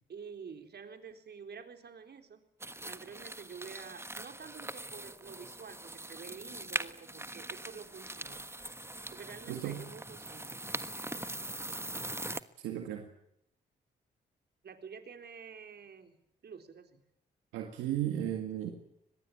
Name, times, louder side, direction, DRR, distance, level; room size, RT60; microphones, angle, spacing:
voice 1, 0.1-2.4 2.8-8.5 9.1-10.6 14.6-16.2 16.4-17.0, right 6 dB, 60° right, 6 dB, 3.9 m, -49 dB
sound 1, 2.6-12.4, right 2 dB, 15° right, 1.4 m, -42 dB
voice 2, 9.5-9.8 12.6-13.1 17.5-18.7, right 11 dB, 85° right, 4 dB, 1.9 m, -35 dB
24.5 x 20.5 x 8.7 m, 0.77 s
hypercardioid pair, 40°, 19 cm